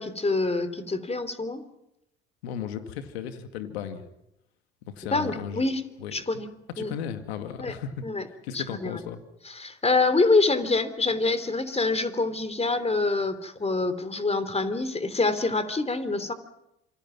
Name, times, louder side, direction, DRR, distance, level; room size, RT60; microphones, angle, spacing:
voice 1, 0.0-1.6 5.1-5.8 6.1-6.5 6.8-6.9 7.6-7.7 8.0-8.2 8.5-9.0 9.5-16.3, left 3 dB, 20° left, 12 dB, 3.4 m, -26 dB
voice 2, 2.4-4.1 4.8-5.7 6.0-6.1 6.7-8.0 8.4-9.2, left 8 dB, 80° left, 8 dB, 2.3 m, -35 dB
27.0 x 26.0 x 5.9 m, 0.86 s
hypercardioid pair, 60°, 32 cm